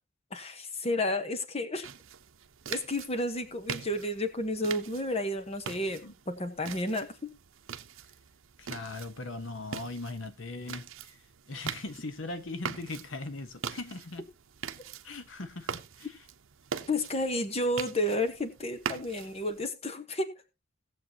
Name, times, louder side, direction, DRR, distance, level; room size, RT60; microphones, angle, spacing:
voice 1, 0.3-1.9 2.7-6.0 6.3-7.3 16.9-20.3, left 1 dB, 30° left, 1.2 m, -31 dB
sound 1, 1.8-19.7, right 7 dB, 75° right, 0.8 m, -43 dB
voice 2, 8.6-14.3 15.0-16.3, left 2 dB, 65° left, 1.0 m, -40 dB
18.5 x 7.4 x 2.9 m
head